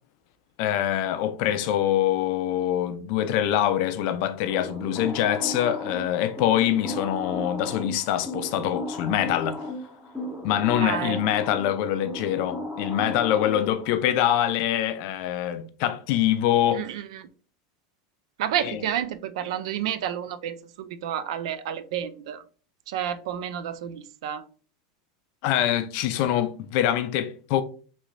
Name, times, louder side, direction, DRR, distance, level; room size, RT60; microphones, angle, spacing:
voice 1, 0.6-9.7 10.4-16.8 18.6-18.8 25.4-27.6, left 11 dB, 50° left, 0.4 m, -24 dB
sound 1, 4.5-13.9, left 2 dB, 5° right, 0.7 m, -35 dB
voice 2, 10.8-11.2 16.7-17.3 18.4-22.4 22.9-24.4, right 10 dB, 70° right, 0.3 m, -30 dB
3.0 x 3.0 x 2.5 m
supercardioid pair, 160°, 3 cm